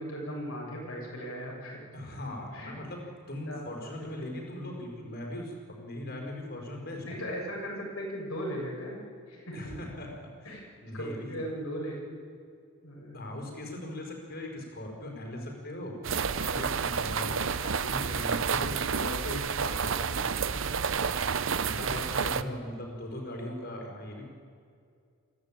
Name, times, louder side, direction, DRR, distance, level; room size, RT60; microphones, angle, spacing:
voice 1, 0.0-1.8 2.5-2.9 3.5-3.9 6.1-6.3 7.0-9.7 10.5-10.6 10.9-12.1 12.8-13.3 17.2-17.4 21.7-22.1, equal, 85° left, -2 dB, 7.1 m, -38 dB
voice 2, 1.9-7.2 9.5-11.4 13.1-16.0 16.4-20.5 21.1-24.2, left 1 dB, 55° left, 0 dB, 5.0 m, -40 dB
sound 1, 16.0-22.4, right 6 dB, 65° right, 0.7 m, -30 dB
24.5 x 15.0 x 8.9 m, 2.3 s
head